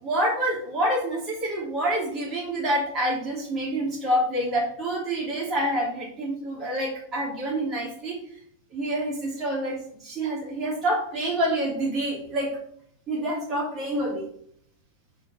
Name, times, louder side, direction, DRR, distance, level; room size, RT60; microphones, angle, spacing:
voice 1, 0.0-8.2 8.7-12.5 13.1-14.3, right 1 dB, 25° right, -4 dB, 3.3 m, -27 dB
8.5 x 5.2 x 6.5 m, 0.65 s
figure-of-eight pair, 90°, 0 cm